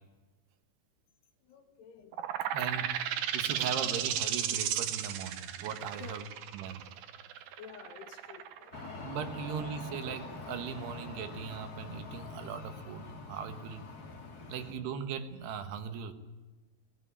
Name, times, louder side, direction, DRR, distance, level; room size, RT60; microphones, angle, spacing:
voice 1, 1.4-2.5 5.9-6.2 7.6-9.1, left 7 dB, 80° left, 4 dB, 3.7 m, -51 dB
sound 1, 2.1-9.5, right 10 dB, 65° right, 2.1 m, -34 dB
voice 2, 2.5-2.9 3.3-6.2 6.5-6.8 9.0-13.8 14.5-16.1, right 7 dB, 85° right, 8 dB, 3.5 m, -39 dB
sound 2, 5.6-7.3, equal, 40° right, 2.6 m, -57 dB
sound 3, 8.7-14.7, left 3 dB, 35° left, 1.8 m, -45 dB
18.5 x 18.5 x 10.0 m, 1.2 s
omnidirectional pair, 4.6 m